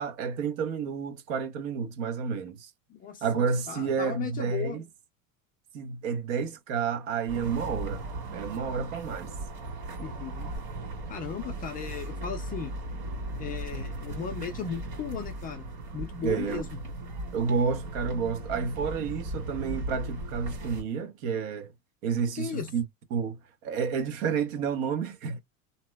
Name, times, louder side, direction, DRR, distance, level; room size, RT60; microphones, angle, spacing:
voice 1, 0.0-2.7 3.2-4.8 5.7-8.1 8.3-9.3 16.2-16.6 17.3-21.7 22.0-22.8 23.1-25.4, right 6 dB, 70° right, 1.0 m, -30 dB
voice 2, 2.9-4.8 10.0-10.5 11.1-12.7 13.4-15.7 15.9-16.8 22.4-22.7, left 7 dB, 25° left, 0.3 m, -36 dB
sound 1, 7.3-20.8, right 2 dB, 45° right, 1.9 m, -37 dB
2.8 x 2.1 x 3.3 m
supercardioid pair, 145°, 41 cm